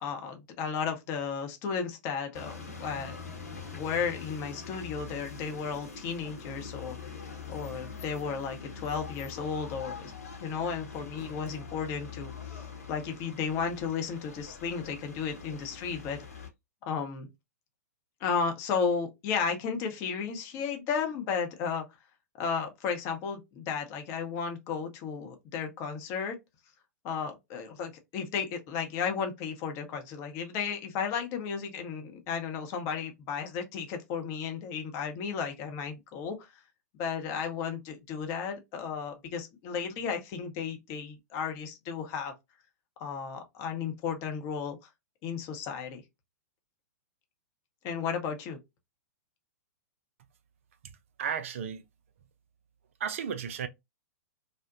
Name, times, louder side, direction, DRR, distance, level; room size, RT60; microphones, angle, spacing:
voice 1, 0.0-3.2 3.7-7.0 7.5-10.1 10.4-16.4 16.9-17.3 18.2-21.8 22.4-26.4 27.0-36.6 37.0-42.3 43.0-44.8 45.2-46.0 47.8-48.6, left 6 dB, 30° left, 0.6 m, -34 dB
sound 1, 2.3-16.5, left 5 dB, 65° left, 1.0 m, -43 dB
voice 2, 51.2-51.8 53.0-53.7, right 7 dB, 50° right, 0.4 m, -33 dB
2.6 x 2.1 x 2.4 m
figure-of-eight pair, 110°, 9 cm